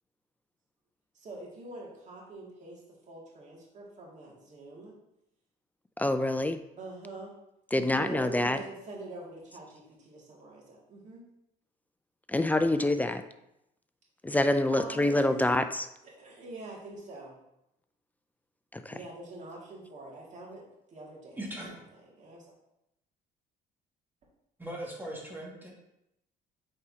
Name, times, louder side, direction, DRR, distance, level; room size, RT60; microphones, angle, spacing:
voice 1, 1.1-2.8 3.1-4.9 6.8-7.3 7.7-11.3 12.5-12.7 14.7-15.6 16.0-17.3 18.9-21.4 22.2-22.5, right 2 dB, 45° right, -3 dB, 2.2 m, -45 dB
voice 2, 6.0-6.6 7.7-8.6 12.3-13.2 14.2-15.8 18.7-19.0, left 1 dB, 10° left, 9 dB, 0.3 m, -26 dB
voice 3, 21.4-21.7 24.6-25.7, right 1 dB, 10° right, -3 dB, 1.9 m, -39 dB
8.5 x 4.3 x 2.8 m, 0.85 s
cardioid pair, 110°, 17 cm